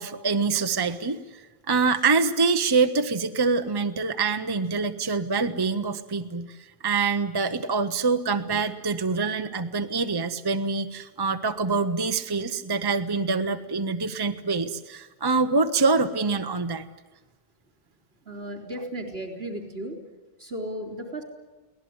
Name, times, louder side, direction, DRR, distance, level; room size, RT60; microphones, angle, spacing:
voice 1, 0.0-1.4 1.7-16.9, right 4 dB, 25° right, 8 dB, 0.9 m, -25 dB
voice 2, 18.2-20.0 20.4-21.2, right 1 dB, 70° right, 4 dB, 4.4 m, -35 dB
23.5 x 18.0 x 9.8 m, 1.2 s
omnidirectional pair, 1.1 m